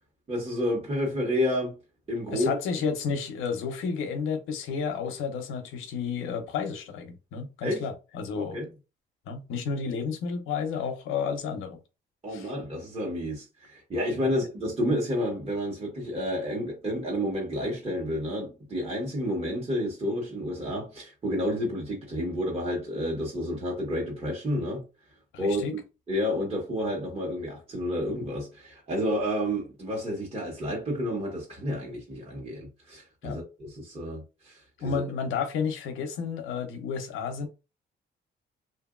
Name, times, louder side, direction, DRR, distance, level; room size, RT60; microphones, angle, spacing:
voice 1, 0.3-1.7 2.1-2.6 7.6-7.8 8.3-8.7 12.2-24.8 25.4-25.8 26.1-35.0, equal, 30° right, 1.2 m, -30 dB
voice 2, 2.3-8.6 9.3-11.8 12.3-12.5 14.2-14.3 25.3-25.7 33.2-33.4 34.8-37.5, left 6 dB, 85° left, 0.7 m, -31 dB
2.8 x 2.5 x 2.4 m
cardioid pair, 90°, 20 cm